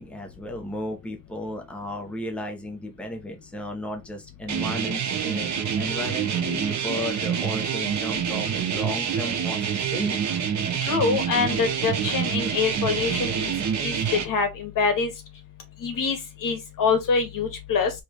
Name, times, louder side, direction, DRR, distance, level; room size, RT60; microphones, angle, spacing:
voice 1, 0.0-5.5 5.8-10.3, left 1 dB, 5° left, 0.8 m, -34 dB
sound 1, 4.5-14.2, right 7 dB, 60° right, 1.1 m, -27 dB
voice 2, 10.8-13.5 13.8-14.0 14.2-15.1 15.8-17.9, left 5 dB, 85° left, 1.8 m, -25 dB
5.2 x 3.3 x 3.0 m
wide cardioid pair, 175°, 32 cm